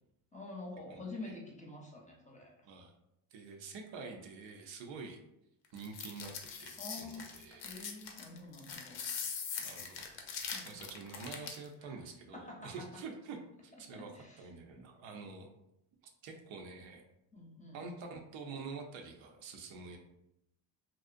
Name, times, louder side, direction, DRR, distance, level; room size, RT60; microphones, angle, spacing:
voice 1, 0.3-2.5 6.8-7.3 7.6-9.0 10.5-10.8 11.8-12.0 12.3-12.7 13.9-14.5 17.3-17.9, left 2 dB, 15° left, -2 dB, 0.7 m, -47 dB
voice 2, 0.9-1.4 2.6-2.9 3.3-5.2 5.7-6.3 6.6-7.7 9.6-10.0 10.6-13.4 13.6-14.1 14.4-15.5 16.2-17.0 17.7-20.0, right 4 dB, 65° right, 3 dB, 0.6 m, -47 dB
sound 1, 5.8-11.7, left 6 dB, 60° left, 0.6 m, -42 dB
2.5 x 2.1 x 2.5 m, 0.83 s
supercardioid pair, 65°, 49 cm